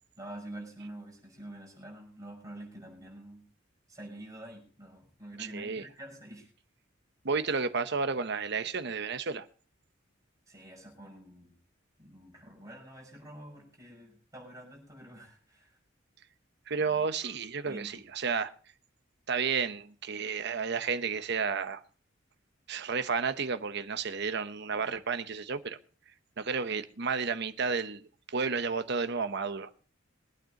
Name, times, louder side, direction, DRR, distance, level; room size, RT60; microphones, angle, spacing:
voice 1, 0.2-3.4 3.9-6.5 10.5-11.5 12.0-15.8 17.7-18.0, right 1 dB, 20° right, 5.8 m, -47 dB
voice 2, 5.4-5.8 7.2-9.5 16.7-18.5 19.3-21.8 22.7-25.8 26.4-29.7, right 5 dB, 60° right, 0.9 m, -32 dB
23.0 x 9.1 x 2.9 m
head